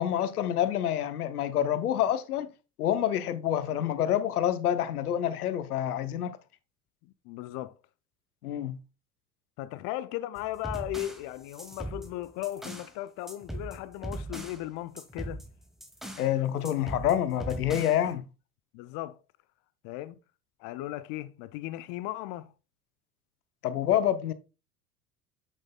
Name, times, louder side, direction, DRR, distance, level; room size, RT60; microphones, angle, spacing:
voice 1, 0.0-2.5 2.8-6.4 8.4-8.8 16.2-18.2 23.6-24.3, left 11 dB, 75° left, 0.7 m, -27 dB
voice 2, 7.0-7.8 9.6-15.4 18.1-18.2 18.7-19.2 19.8-20.2 20.6-22.5, left 15 dB, 40° left, 0.5 m, -37 dB
sound 1, 10.4-12.9 13.3-14.6 15.0-16.3 16.6-18.1, right 1 dB, ahead, 1.3 m, -40 dB
7.9 x 7.4 x 2.2 m
figure-of-eight pair, 70°, 45 cm